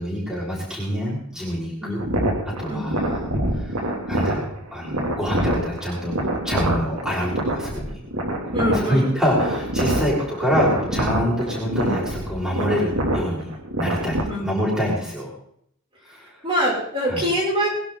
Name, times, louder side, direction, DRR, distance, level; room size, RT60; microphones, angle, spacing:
voice 1, 0.0-2.0 2.6-3.2 3.6-3.8 4.1-6.2 6.4-8.0 8.7-13.5 13.8-15.3 16.1-16.2 17.1-17.2, equal, 5° right, -6 dB, 5.8 m, -25 dB
voice 2, 1.8-2.2 2.7-3.2 8.5-9.1 14.3-14.6 16.4-17.7, equal, 25° right, -6 dB, 5.9 m, -25 dB
sound 1, 2.0-14.2, right 1 dB, 80° right, 2.9 m, -26 dB
22.0 x 11.5 x 4.0 m, 0.68 s
head